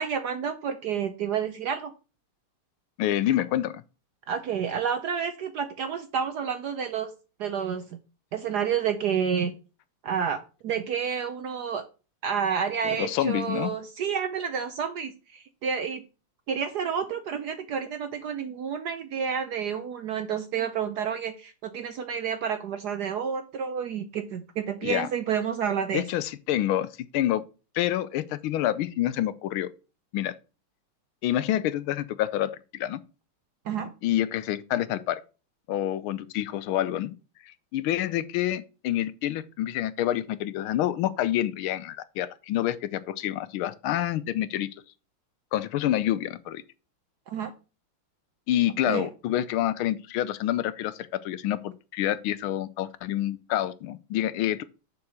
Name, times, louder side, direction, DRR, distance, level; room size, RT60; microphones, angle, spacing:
voice 1, 0.0-1.9 4.3-7.1 7.4-8.0 8.3-9.5 10.0-11.8 12.2-16.0 16.5-26.0 33.7-33.9 47.3-47.5 48.9-49.1, right 7 dB, 70° right, 1.0 m, -30 dB
voice 2, 3.0-3.8 13.0-13.7 24.8-25.1 25.9-27.4 27.7-29.7 30.1-30.3 31.2-33.0 34.0-35.2 35.7-37.1 37.4-44.7 45.5-46.6 48.5-54.6, left 12 dB, 75° left, 1.4 m, -27 dB
7.1 x 4.7 x 6.3 m
omnidirectional pair, 2.4 m